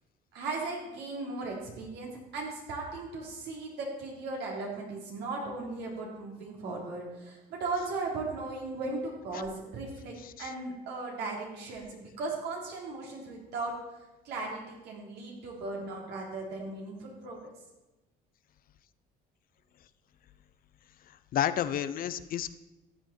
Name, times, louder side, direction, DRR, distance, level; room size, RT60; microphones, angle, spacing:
voice 1, 0.3-17.5, right 3 dB, 80° right, -1 dB, 3.7 m, -37 dB
voice 2, 10.2-10.5 21.1-22.6, left 10 dB, 60° left, 13 dB, 0.7 m, -32 dB
14.0 x 9.0 x 4.5 m, 1.0 s
cardioid pair, 110°, 17 cm